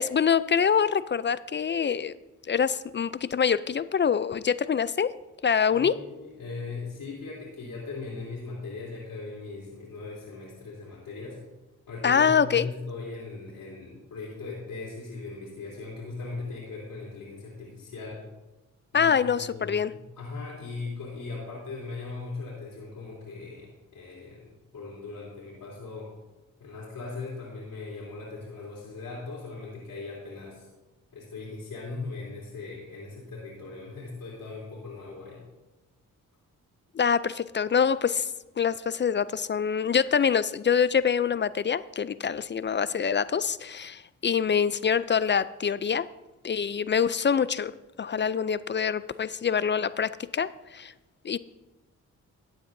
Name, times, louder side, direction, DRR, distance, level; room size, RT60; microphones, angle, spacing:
voice 1, 0.0-2.1 2.5-5.1 5.4-5.9 12.0-12.7 18.9-19.9 36.9-38.3 38.6-46.1 46.4-47.7 48.0-50.9 51.2-51.4, left 7 dB, 35° left, 16 dB, 0.4 m, -25 dB
voice 2, 5.7-11.4 11.9-18.2 18.9-26.1 26.6-30.7 31.1-35.4, left 3 dB, 85° left, -8 dB, 3.2 m, -39 dB
15.0 x 9.3 x 2.6 m, 1.1 s
cardioid pair, 60°, 33 cm